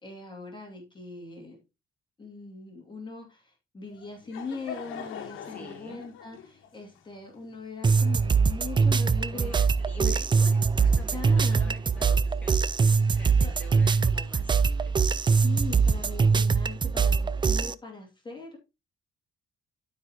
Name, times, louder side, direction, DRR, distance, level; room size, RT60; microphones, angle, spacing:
voice 1, 0.0-1.6 2.2-9.5 9.9-10.2 10.8-11.8 13.4-13.6 15.4-18.6, left 4 dB, 25° left, 1 dB, 2.5 m, -40 dB
Laughter / Crowd, 3.9-8.6, left 7 dB, 85° left, 1.4 m, -43 dB
voice 2, 5.4-6.0 9.3-15.0, left 2 dB, 5° left, -1 dB, 2.5 m, -48 dB
sound 1, 7.8-17.7, right 5 dB, 25° right, 0.4 m, -23 dB
12.0 x 4.8 x 2.9 m, 0.25 s
cardioid pair, 90°, 20 cm